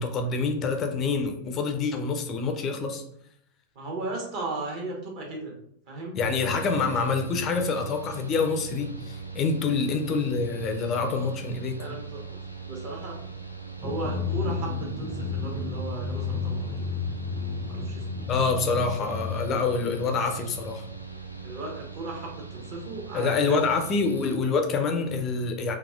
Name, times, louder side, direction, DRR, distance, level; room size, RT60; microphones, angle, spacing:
voice 1, 0.0-3.0 6.2-11.8 18.3-20.8 23.1-25.8, left 4 dB, 30° left, 5 dB, 0.4 m, -26 dB
voice 2, 3.7-5.5 5.9-6.2 9.9-10.0 11.8-12.2 12.7-13.2 13.8-16.9 17.7-18.2 21.4-23.6, right 2 dB, 45° right, 0 dB, 1.0 m, -36 dB
Mechanical fan, 6.2-24.4, right 4 dB, 90° right, 0.4 m, -40 dB
Drum, 13.8-20.3, left 5 dB, 20° right, 0.5 m, -32 dB
4.1 x 2.3 x 2.4 m, 0.70 s
figure-of-eight pair, 90°, 0 cm